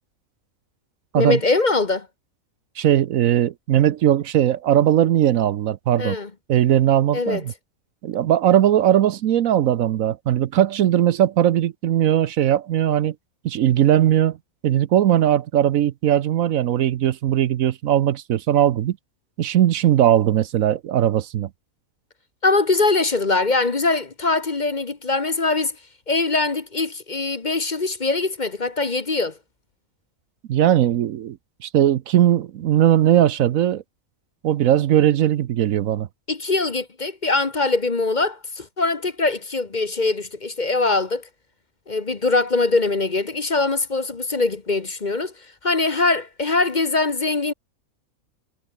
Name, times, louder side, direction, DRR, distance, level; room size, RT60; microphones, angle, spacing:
voice 1, 1.1-2.1 6.0-6.3 7.1-7.4 22.4-25.7 26.1-29.4 36.3-41.3 41.9-45.3 45.6-47.5, left 3 dB, 35° left, 1.3 m, -22 dB
voice 2, 2.8-6.2 6.5-7.5 8.0-13.1 13.4-14.4 14.6-19.0 19.4-21.5 30.5-31.4 31.6-33.8 34.4-36.1, right 11 dB, 70° right, 1.1 m, -19 dB
omnidirectional pair, 1.5 m